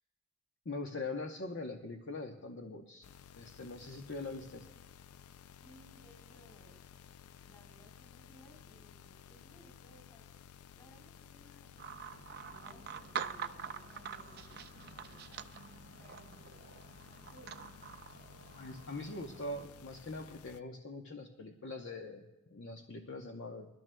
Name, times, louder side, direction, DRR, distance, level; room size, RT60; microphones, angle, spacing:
voice 1, 0.6-3.1 3.4-4.7 18.5-23.7, left 2 dB, 55° left, 4 dB, 0.9 m, -43 dB
sound 1, 3.0-20.6, left 8 dB, 80° left, 0.4 m, -56 dB
voice 2, 5.6-6.8 7.4-10.2 10.7-11.8 12.1-15.5 16.0-17.6, right 1 dB, 20° left, 2 dB, 3.7 m, -62 dB
sound 2, 11.8-19.7, right 7 dB, 45° right, 0.5 m, -46 dB
26.5 x 12.5 x 2.2 m, 1.1 s
head